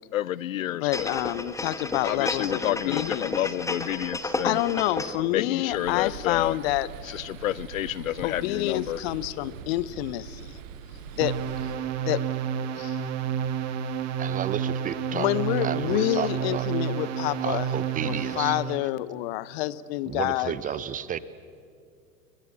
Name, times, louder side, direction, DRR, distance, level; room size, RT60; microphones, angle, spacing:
voice 1, 0.1-1.1 2.0-4.6 5.3-6.6 7.0-9.0, left 13 dB, 60° left, 22 dB, 0.6 m, -29 dB
voice 2, 0.8-3.4 4.4-7.2 8.2-10.6 11.1-11.4 11.6-11.7 12.0-12.2 12.7-13.0 15.1-17.7 18.0-20.5, left 16 dB, 40° left, 18 dB, 0.9 m, -28 dB
sound 1, 0.9-5.3 5.7-5.8, left 2 dB, 5° left, 1.3 m, -32 dB
sound 2, 5.7-11.8, right 8 dB, 55° right, 1.5 m, -42 dB
sound 3, 11.2-18.8, right 8 dB, 35° right, 2.1 m, -30 dB
voice 3, 14.2-16.7 17.4-18.6 20.1-21.2, right 8 dB, 15° right, 16 dB, 0.8 m, -32 dB
29.5 x 23.0 x 7.4 m, 2.3 s
figure-of-eight pair, 90°, 46 cm